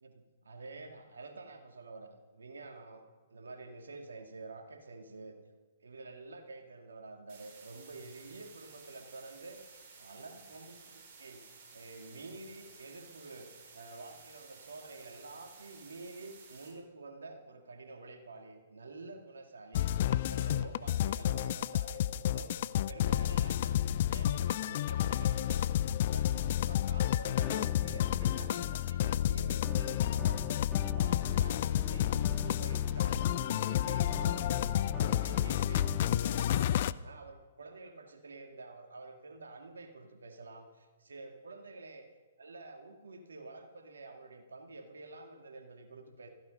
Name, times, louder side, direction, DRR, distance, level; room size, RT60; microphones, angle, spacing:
voice 1, 0.0-3.0 3.3-5.3 5.8-13.5 13.7-22.5 22.8-25.7 26.1-33.2 33.5-42.1 42.4-46.3, right 3 dB, 75° right, 4 dB, 2.2 m, -49 dB
sound 1, 7.3-16.7, right 5 dB, 45° right, 5.9 m, -55 dB
sound 2, 19.7-36.9, left 11 dB, 50° left, 0.5 m, -30 dB
sound 3, 21.9-22.0 23.1-24.2 24.6-25.6 27.4-29.0 29.6-36.2, equal, ahead, 0.5 m, -48 dB
16.0 x 15.5 x 5.3 m, 1.3 s
figure-of-eight pair, 120°, 0 cm